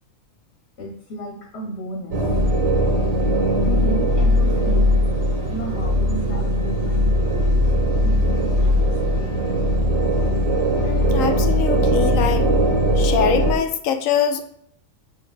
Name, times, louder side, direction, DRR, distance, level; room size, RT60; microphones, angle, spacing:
voice 1, 0.8-2.2 3.6-5.0 5.5-7.7 8.0-9.4, right 1 dB, 55° left, 0 dB, 1.2 m, -33 dB
sound 1, 2.1-13.5, equal, 85° right, 1.6 m, -19 dB
voice 2, 10.8-12.5 13.0-14.4, left 8 dB, 80° left, 8 dB, 1.1 m, -23 dB
7.0 x 3.2 x 4.8 m, 0.68 s
omnidirectional pair, 1.4 m